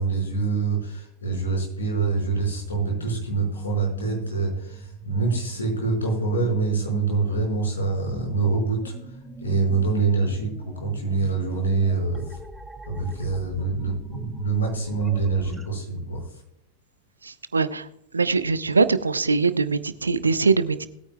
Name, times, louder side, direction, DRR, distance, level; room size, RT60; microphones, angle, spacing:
voice 1, 0.0-8.9 9.4-12.4 12.9-16.2, right 4 dB, 70° left, 0 dB, 5.2 m, -25 dB
sound 1, 1.9-15.7, right 1 dB, 5° right, 1.1 m, -43 dB
voice 2, 17.2-17.9 18.1-20.9, right 4 dB, 75° right, 14 dB, 0.7 m, -22 dB
20.0 x 9.2 x 2.3 m, 0.76 s
figure-of-eight pair, 90°, 0 cm